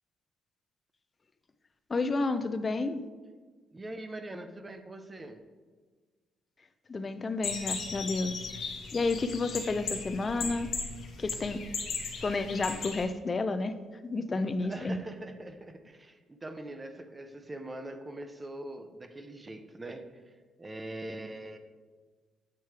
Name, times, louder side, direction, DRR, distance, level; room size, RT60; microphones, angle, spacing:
voice 1, 1.9-3.0 6.9-8.4 8.9-10.7 11.2-11.6 12.2-13.7 14.0-15.0, left 3 dB, 35° left, 10 dB, 0.4 m, -31 dB
voice 2, 3.7-5.4 14.3-20.2 20.6-21.6, right 1 dB, 20° right, 8 dB, 0.6 m, -42 dB
sound 1, 7.4-13.0, left 5 dB, 65° left, 1.0 m, -37 dB
8.3 x 3.1 x 4.6 m, 1.4 s
cardioid pair, 90°, 0 cm